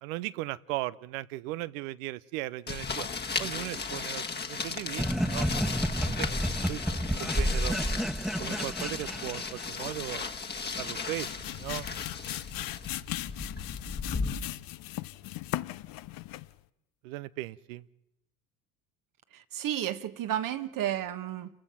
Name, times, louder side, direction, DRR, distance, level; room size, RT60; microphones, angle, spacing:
voice 1, 0.0-3.1 3.4-5.5 6.0-6.3 6.7-7.8 8.4-10.3 10.8-11.9 12.4-12.5 17.0-17.8, right 17 dB, 70° right, 0.8 m, -37 dB
sound 1, 2.7-14.3, left 4 dB, 25° left, 1.5 m, -36 dB
sound 2, 5.0-9.8, equal, ahead, 0.7 m, -30 dB
sound 3, 10.8-16.6, left 16 dB, 50° left, 0.8 m, -38 dB
voice 2, 19.3-21.5, right 12 dB, 50° right, 1.4 m, -32 dB
29.5 x 15.5 x 5.7 m
hypercardioid pair, 70°, 43 cm